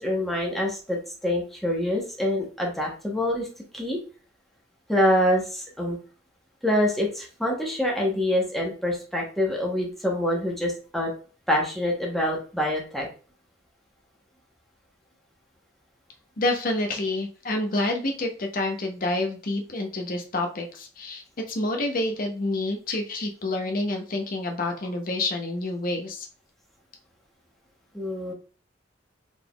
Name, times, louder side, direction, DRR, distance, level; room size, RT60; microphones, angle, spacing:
voice 1, 0.0-3.5 3.7-4.0 4.9-6.0 6.6-11.1 11.5-13.1 27.9-28.3, left 1 dB, ahead, -2 dB, 1.0 m, -25 dB
voice 2, 16.4-26.3, left 2 dB, 45° left, 3 dB, 0.7 m, -28 dB
4.0 x 3.5 x 2.3 m, 0.38 s
head